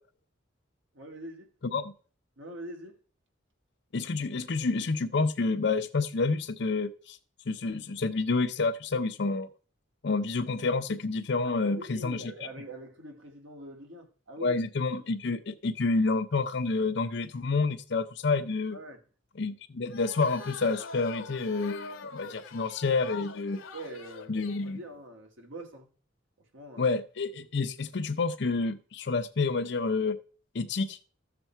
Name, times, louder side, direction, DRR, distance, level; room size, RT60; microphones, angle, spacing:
voice 1, 0.9-1.5 2.4-3.0 11.4-14.6 18.7-19.0 23.7-25.9 26.5-27.0, right 1 dB, 75° right, 2.1 m, -44 dB
voice 2, 3.9-7.2 7.5-9.5 10.0-12.3 14.4-18.8 19.4-23.6 24.3-24.8 26.8-30.2 30.5-31.0, left 3 dB, 60° left, 0.6 m, -29 dB
sound 1, 19.9-24.8, left 5 dB, 85° left, 1.1 m, -44 dB
13.5 x 6.8 x 4.5 m
head